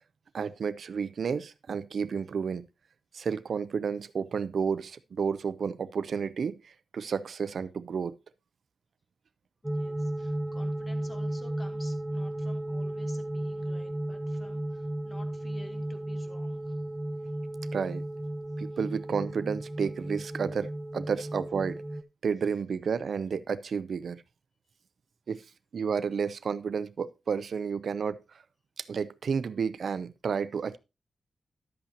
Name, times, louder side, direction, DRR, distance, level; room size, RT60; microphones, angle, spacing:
voice 1, 0.3-2.7 3.1-8.1 17.7-18.0 18.6-21.8 22.2-24.2 25.3-25.4 25.7-28.4 28.8-30.8, right 6 dB, 65° right, 0.5 m, -31 dB
voice 2, 9.6-16.8 18.7-18.8, left 1 dB, 30° left, 2.2 m, -52 dB
sound 1, 9.6-22.0, right 1 dB, 10° right, 0.5 m, -34 dB
11.5 x 8.3 x 2.9 m
wide cardioid pair, 100°, 0 cm